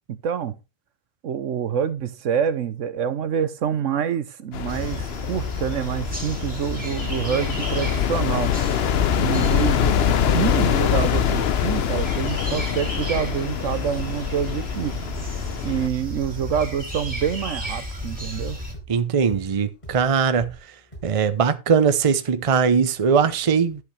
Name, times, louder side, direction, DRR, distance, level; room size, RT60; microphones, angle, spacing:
voice 1, 0.1-0.6 1.2-8.5 9.2-15.0 15.6-18.6, right 8 dB, 75° right, 1.2 m, -26 dB
sound 1, 4.5-15.9, left 9 dB, 60° left, 0.9 m, -24 dB
sound 2, 4.7-18.7, equal, 5° right, 2.7 m, -33 dB
sound 3, 12.6-16.8 17.1-21.4, right 2 dB, 35° left, 6.3 m, -43 dB
voice 2, 18.9-20.5 21.0-23.8, right 6 dB, 35° right, 0.7 m, -20 dB
11.0 x 8.3 x 3.2 m
omnidirectional pair, 1.3 m